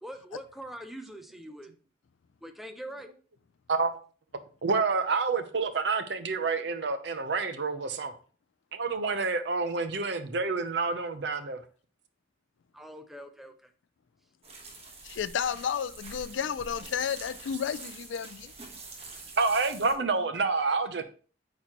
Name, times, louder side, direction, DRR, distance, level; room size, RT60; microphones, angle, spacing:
voice 1, 0.0-1.7 2.4-3.1 9.0-9.2 12.7-13.7, right 1 dB, ahead, 0.6 m, -43 dB
voice 2, 3.7-4.0 4.6-8.1 8.7-11.6 19.4-21.0, right 4 dB, 65° right, 0.7 m, -28 dB
sound 1, 14.4-19.9, right 3 dB, 35° right, 1.2 m, -46 dB
voice 3, 15.0-18.5, left 7 dB, 85° left, 0.4 m, -32 dB
8.6 x 4.1 x 3.0 m
head